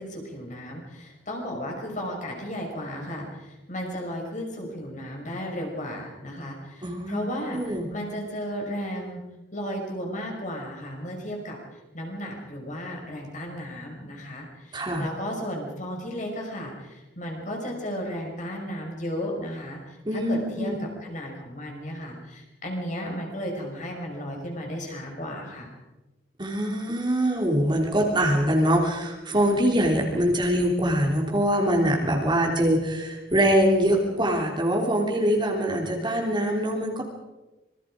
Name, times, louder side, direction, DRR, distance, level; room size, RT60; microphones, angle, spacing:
voice 1, 0.0-7.6 7.9-9.2 9.5-11.6 11.9-25.7, equal, 40° left, 1 dB, 5.8 m, -34 dB
voice 2, 6.8-7.9 14.7-15.0 20.0-20.7 26.4-37.0, equal, 25° right, 0 dB, 3.2 m, -23 dB
26.5 x 22.0 x 5.0 m, 1.1 s
head